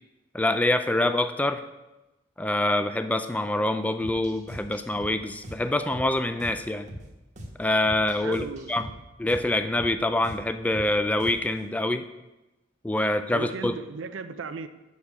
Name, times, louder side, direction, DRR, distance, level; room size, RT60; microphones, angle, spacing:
voice 1, 0.3-1.6 2.4-6.9 7.6-8.9 9.2-12.0 12.8-13.7, left 1 dB, 10° left, 10 dB, 0.3 m, -25 dB
sound 1, 4.0-11.6, equal, 40° right, 1.2 m, -43 dB
voice 2, 8.2-8.7 13.3-14.7, right 4 dB, 70° right, 10 dB, 0.5 m, -36 dB
6.4 x 5.5 x 5.9 m, 1.0 s
head